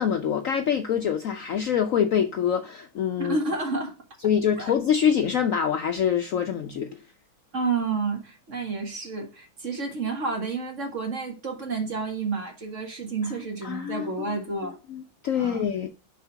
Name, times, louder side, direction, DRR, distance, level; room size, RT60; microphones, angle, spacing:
voice 1, 0.0-3.4 4.2-6.9 13.6-14.4 14.6-15.9, left 8 dB, 85° left, 0.7 m, -25 dB
voice 2, 3.2-3.9 7.5-14.8 15.3-15.7, right 4 dB, 40° right, 1.9 m, -30 dB
5.7 x 4.9 x 5.7 m
omnidirectional pair, 2.2 m